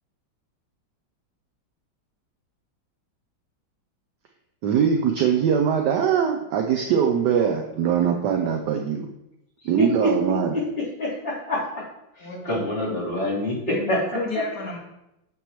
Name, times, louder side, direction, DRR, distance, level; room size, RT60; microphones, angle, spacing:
voice 1, 4.6-9.1 9.6-10.5, right 7 dB, 70° right, 3 dB, 1.2 m, -22 dB
voice 2, 9.6-10.1 10.5-10.6 11.0-11.6 12.2-13.5 13.9-14.0, left 1 dB, 30° left, -9 dB, 3.9 m, -26 dB
voice 3, 12.2-12.6 13.7-14.8, left 3 dB, 55° left, -2 dB, 2.5 m, -33 dB
9.2 x 7.7 x 3.1 m, 0.87 s
omnidirectional pair, 2.2 m